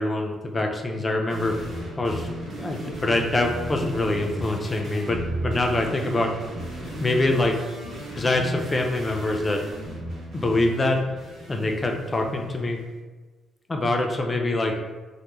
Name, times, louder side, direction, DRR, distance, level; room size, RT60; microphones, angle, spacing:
voice 1, 0.0-1.5 2.0-6.3 7.0-7.6 7.8-9.6 10.3-11.0 11.5-12.8 13.7-14.7, left 2 dB, 25° left, 2 dB, 0.4 m, -25 dB
sound 1, 1.3-12.8, right 1 dB, 60° right, 0.7 m, -35 dB
2.2 x 2.1 x 2.9 m, 1.3 s
cardioid pair, 90°, 0 cm